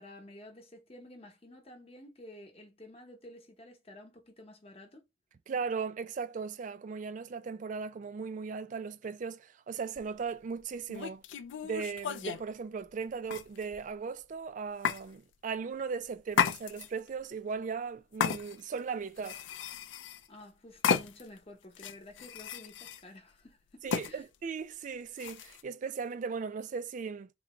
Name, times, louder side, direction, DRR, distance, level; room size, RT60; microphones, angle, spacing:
voice 1, 0.0-5.0 20.3-24.2, left 1 dB, 30° left, 0.8 m, -51 dB
voice 2, 5.5-11.2 11.6-19.4 23.8-27.3, right 5 dB, 40° right, 0.3 m, -37 dB
sound 1, 10.0-10.1 10.9-12.5 13.3-13.9 14.8-15.0 16.3-17.1 18.2-18.8 19.2-20.3 20.8-21.4 21.8-23.0 23.9-24.1 25.2-25.6, left 7 dB, 70° left, 0.4 m, -33 dB
3.8 x 2.2 x 3.0 m
head